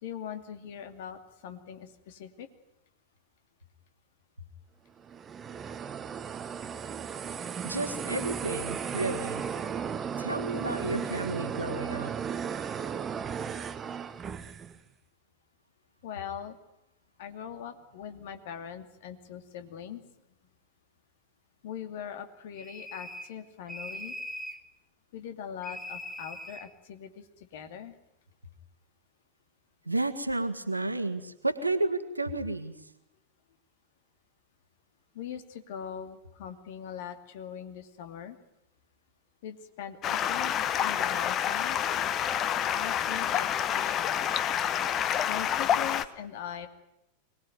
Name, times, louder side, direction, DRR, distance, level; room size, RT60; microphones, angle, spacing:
voice 1, 0.0-2.5 16.0-16.6 17.2-20.0 21.6-24.2 25.1-27.2 27.5-27.9 35.1-38.4 39.4-40.5 40.8-41.8 42.8-44.2 45.3-46.7, left 9 dB, 55° left, 7 dB, 2.6 m, -41 dB
sound 1, 5.0-14.8, right 7 dB, 25° right, 1.1 m, -35 dB
voice 2, 7.6-9.4 10.2-12.1 29.9-32.8, right 2 dB, 85° right, 8 dB, 1.8 m, -31 dB
sound 2, 22.6-23.4 23.7-24.6 25.6-26.7, equal, 5° left, 1.8 m, -41 dB
Stream, 40.0-46.1, left 9 dB, 30° left, 1.2 m, -28 dB
24.5 x 20.0 x 9.4 m, 0.85 s
figure-of-eight pair, 90°, 0 cm